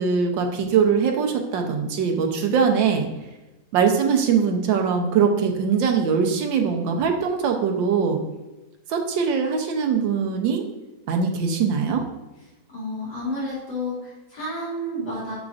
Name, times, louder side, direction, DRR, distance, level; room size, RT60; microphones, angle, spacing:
voice 1, 0.0-3.1 3.7-8.2 8.9-10.6 11.1-12.0, right 6 dB, 75° right, 4 dB, 1.5 m, -22 dB
voice 2, 12.7-15.3, left 1 dB, 60° left, -8 dB, 3.0 m, -30 dB
7.3 x 6.1 x 2.5 m, 1.1 s
omnidirectional pair, 2.1 m